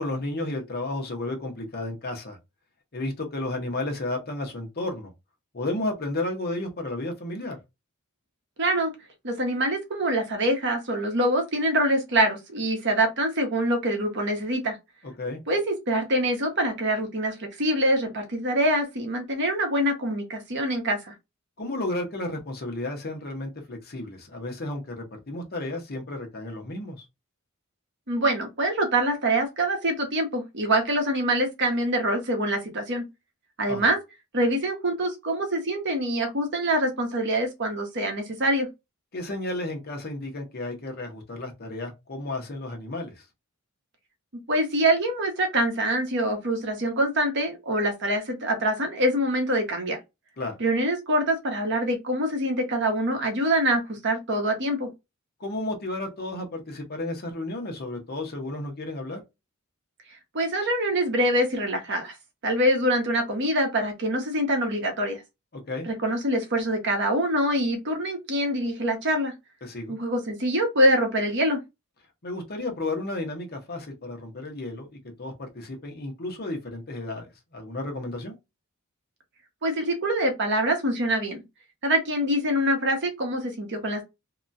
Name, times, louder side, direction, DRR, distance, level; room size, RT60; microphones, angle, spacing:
voice 1, 0.0-2.4 2.9-5.1 5.5-7.6 15.2-15.4 21.6-27.0 33.7-33.8 39.1-43.1 50.4-50.5 55.4-59.2 65.7-65.9 69.6-70.0 72.2-78.3, left 2 dB, 45° left, 0.9 m, -32 dB
voice 2, 8.6-8.9 9.2-14.8 15.5-21.1 28.1-33.0 33.6-34.0 34.3-38.7 44.5-50.0 50.6-54.9 60.3-62.1 62.4-65.2 65.8-69.3 69.9-71.6 79.6-81.4 81.8-84.0, right 1 dB, 55° right, 1.0 m, -25 dB
2.8 x 2.3 x 2.5 m
head